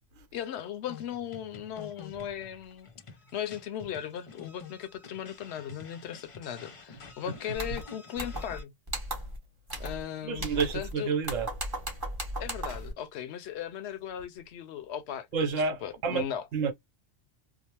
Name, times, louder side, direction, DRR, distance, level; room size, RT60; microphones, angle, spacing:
voice 1, 0.3-2.9 3.3-8.7 9.8-11.2 12.4-15.5 15.8-16.4, left 9 dB, 65° left, 0.8 m, -37 dB
sound 1, 0.9-8.6, left 5 dB, 45° left, 0.4 m, -49 dB
sound 2, 7.5-7.8 8.2-8.6 8.9-9.4 9.7-10.0 10.3-10.9 11.2-12.9, right 1 dB, 20° right, 0.8 m, -36 dB
voice 2, 10.2-11.5 15.3-16.2 16.5-16.7, right 5 dB, 85° right, 1.1 m, -29 dB
2.8 x 2.0 x 2.9 m
omnidirectional pair, 1.3 m